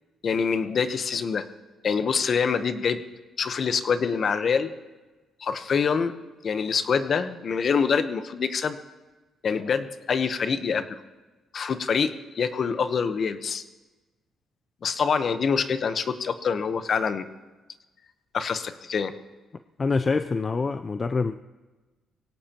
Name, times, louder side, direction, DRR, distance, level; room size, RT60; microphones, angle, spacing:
voice 1, 0.2-1.4 1.8-3.0 3.4-4.7 5.4-6.1 6.4-8.8 9.4-11.0 11.5-13.6 14.8-17.3 18.3-19.1, left 6 dB, 50° left, 10 dB, 1.0 m, -25 dB
voice 2, 19.8-21.4, left 4 dB, 35° left, 10 dB, 0.5 m, -25 dB
22.5 x 17.0 x 3.0 m, 1.2 s
cardioid pair, 90°, 0 cm